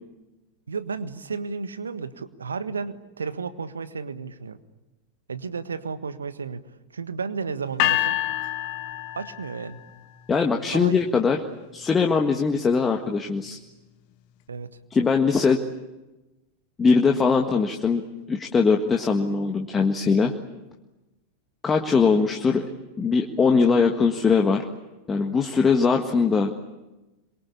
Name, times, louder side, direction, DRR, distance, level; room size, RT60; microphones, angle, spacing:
voice 1, 0.7-4.6 5.3-6.6 6.9-8.2 9.1-9.8 10.7-11.0 14.5-14.7, right 5 dB, 75° right, 12 dB, 1.5 m, -32 dB
sound 1, 7.8-9.9, left 13 dB, 45° left, 1.6 m, -26 dB
voice 2, 10.3-11.4 11.7-13.6 14.9-15.6 16.8-18.0 18.3-20.3 21.6-22.7 23.0-24.6 25.1-26.5, left 5 dB, 15° left, 3 dB, 1.7 m, -21 dB
26.5 x 23.0 x 8.5 m, 1.1 s
figure-of-eight pair, 90°, 0 cm